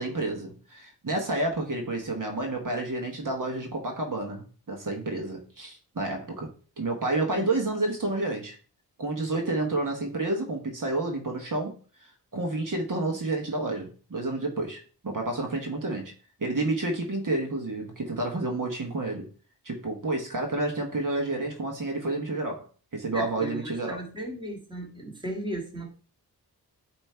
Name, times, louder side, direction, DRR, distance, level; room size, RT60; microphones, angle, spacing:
voice 1, 0.0-6.5 6.8-8.5 9.0-11.7 12.0-16.1 16.4-19.3 19.6-22.6 22.9-24.0, right 2 dB, 50° right, 1.5 m, -30 dB
voice 2, 23.1-25.9, right 1 dB, 10° right, 1.8 m, -36 dB
8.8 x 3.1 x 4.5 m
cardioid pair, 75°, 40 cm